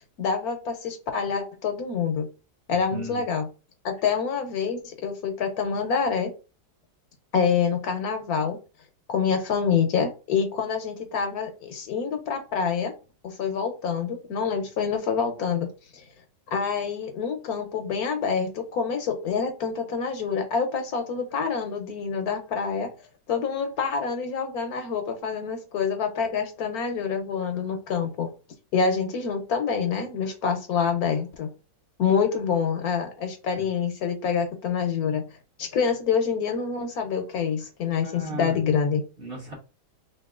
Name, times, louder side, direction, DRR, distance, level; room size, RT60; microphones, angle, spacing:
voice 1, 0.2-2.3 2.7-3.5 3.8-6.3 7.3-8.6 9.1-12.9 13.2-15.7 15.9-16.0 16.5-22.9 23.3-28.3 28.7-31.5 32.0-35.2 35.6-39.0, left 6 dB, 65° left, 5 dB, 1.1 m, -26 dB
voice 2, 38.0-38.6 39.2-39.5, equal, 40° right, -2 dB, 1.1 m, -36 dB
3.0 x 2.7 x 3.5 m, 0.31 s
omnidirectional pair, 1.8 m